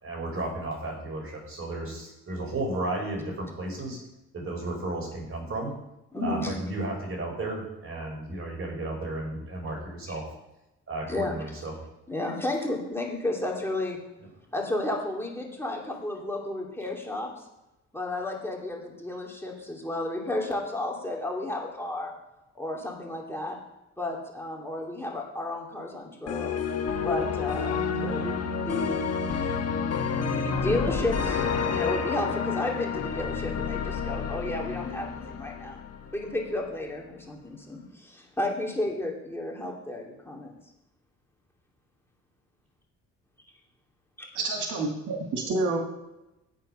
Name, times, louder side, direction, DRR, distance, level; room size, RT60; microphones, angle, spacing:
voice 1, 0.0-4.0 4.3-5.7 6.2-10.2 10.9-11.7, right 2 dB, 45° right, 0 dB, 4.8 m, -33 dB
voice 2, 6.1-6.6 10.1-10.2 11.1-11.3 12.1-14.0 14.5-17.3 17.9-22.1 22.5-23.6 24.0-26.6 27.0-28.4 28.6-29.0 30.1-35.8 36.1-40.5, left 1 dB, 10° left, -2 dB, 2.7 m, -32 dB
sound 1, 26.3-36.3, left 6 dB, 55° left, 1.4 m, -29 dB
voice 3, 44.4-45.8, right 3 dB, 80° right, 1 dB, 2.1 m, -28 dB
10.5 x 8.7 x 5.6 m, 0.95 s
cardioid pair, 90°, 30 cm